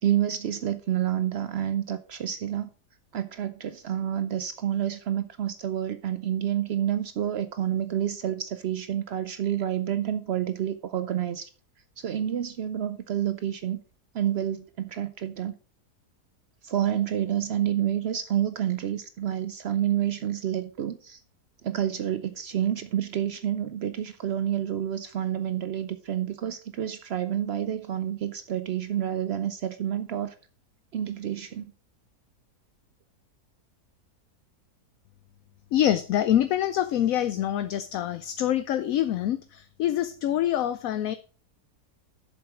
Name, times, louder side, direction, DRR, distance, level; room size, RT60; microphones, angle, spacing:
voice 1, 0.0-2.7 3.1-11.5 12.0-13.8 14.1-15.5 16.6-21.2 21.6-30.3 30.9-31.6, right 10 dB, 90° right, 0.5 m, -29 dB
voice 2, 35.7-41.2, left 11 dB, 70° left, 0.9 m, -25 dB
7.4 x 7.1 x 4.9 m
omnidirectional pair, 1.7 m